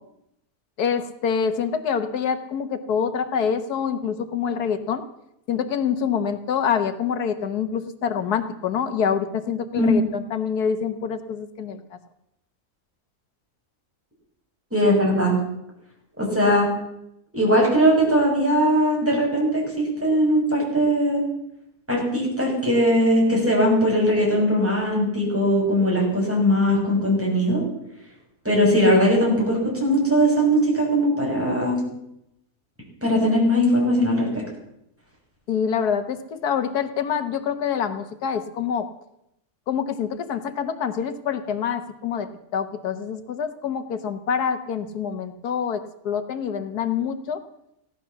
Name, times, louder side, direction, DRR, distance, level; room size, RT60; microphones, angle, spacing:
voice 1, 0.8-5.0 5.5-11.8 35.5-38.9 39.7-47.4, left 7 dB, 90° left, 9 dB, 1.6 m, -26 dB
voice 2, 9.8-10.1 14.7-15.3 16.2-16.7 17.3-21.2 21.9-27.6 28.4-31.8 33.0-34.3, equal, 10° right, -3 dB, 6.4 m, -20 dB
16.5 x 12.0 x 7.1 m, 0.81 s
omnidirectional pair, 1.6 m